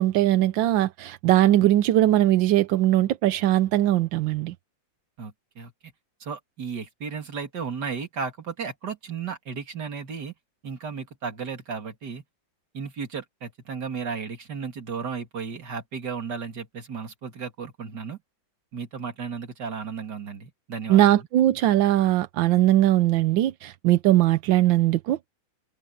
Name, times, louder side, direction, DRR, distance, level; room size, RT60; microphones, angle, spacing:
voice 1, 0.0-4.5 20.9-25.2, right 14 dB, 85° right, 1.4 m, -20 dB
voice 2, 5.2-5.7 6.2-10.3 10.6-12.2 12.7-18.2 18.7-21.3, right 6 dB, 60° right, 2.9 m, -34 dB
omnidirectional pair, 2.0 m